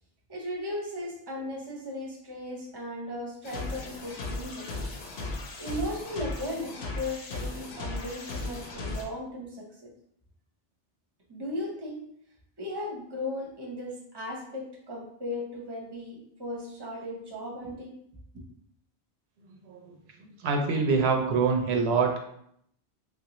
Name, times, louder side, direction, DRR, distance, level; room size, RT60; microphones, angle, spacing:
voice 1, 0.3-4.7 5.6-9.9 11.3-12.0 12.6-17.9, left 1 dB, 25° right, -2 dB, 0.7 m, -36 dB
sound 1, 3.4-9.0, left 2 dB, 75° left, 0.9 m, -36 dB
voice 2, 19.5-19.9 20.4-22.2, right 4 dB, 80° right, 2 dB, 0.8 m, -25 dB
3.4 x 2.4 x 2.9 m, 0.70 s
omnidirectional pair, 1.1 m